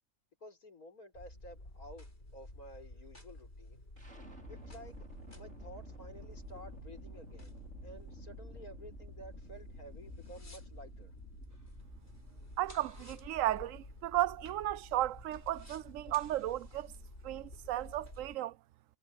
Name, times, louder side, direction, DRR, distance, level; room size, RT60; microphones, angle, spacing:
voice 1, 0.4-3.8 4.5-5.1 5.3-7.6 7.8-11.1, equal, 90° left, 5.5 m, -52 dB
sound 1, 1.1-18.4, left 1 dB, 45° left, 6.0 m, -52 dB
sound 2, 4.0-15.8, right 1 dB, 55° right, 6.1 m, -53 dB
sound 3, 11.5-16.6, equal, 10° right, 7.2 m, -62 dB
voice 2, 12.6-16.9 17.2-18.6, right 14 dB, 70° right, 0.9 m, -34 dB
omnidirectional pair, 1.5 m